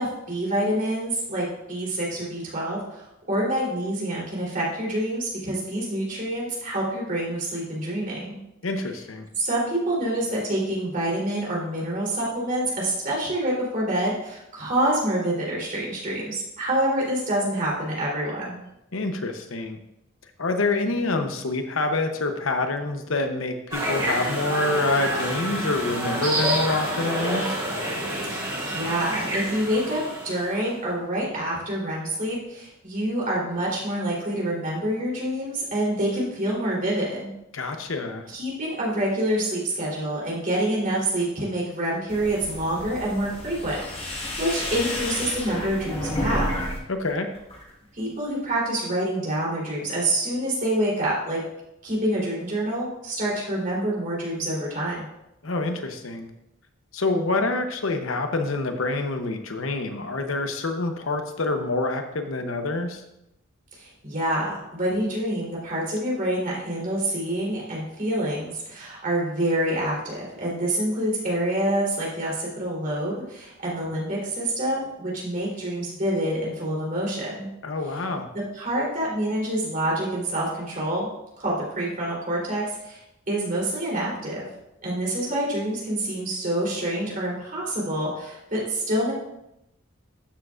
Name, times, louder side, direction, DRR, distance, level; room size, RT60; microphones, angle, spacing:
voice 1, 0.0-8.4 9.4-18.6 28.2-37.3 38.3-46.5 47.9-51.4 51.8-55.0 63.8-77.5 78.5-81.1 81.4-83.0 83.3-84.5 84.8-89.1, right 1 dB, 45° right, -5 dB, 3.7 m, -27 dB
voice 2, 8.6-9.3 18.9-19.8 20.4-27.5 37.5-38.3 46.9-47.3 55.4-56.3 56.9-63.0 77.6-78.3, left 2 dB, 70° left, 6 dB, 0.9 m, -26 dB
sound 1, 23.7-30.6, right 1 dB, 20° right, 3.8 m, -28 dB
sound 2, 42.1-46.8 47.1-47.7, left 1 dB, 30° left, 1.7 m, -31 dB
12.5 x 7.3 x 2.6 m, 0.85 s
head